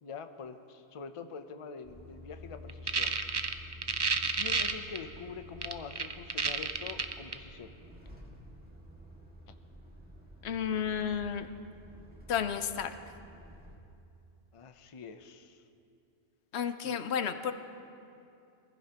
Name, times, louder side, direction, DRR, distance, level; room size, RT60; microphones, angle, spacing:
voice 1, 0.0-3.2 4.3-7.8 14.5-15.6 16.8-17.0, left 5 dB, 35° left, 8 dB, 0.6 m, -45 dB
Truck, 1.8-13.8, left 1 dB, 10° right, 1.8 m, -51 dB
sound 1, 2.7-5.0 5.6-7.3, right 4 dB, 35° right, 0.4 m, -30 dB
voice 2, 10.4-11.5 12.3-12.9 16.5-17.5, left 8 dB, 85° left, 9 dB, 1.0 m, -32 dB
23.0 x 15.5 x 2.9 m, 2.6 s
omnidirectional pair, 1.1 m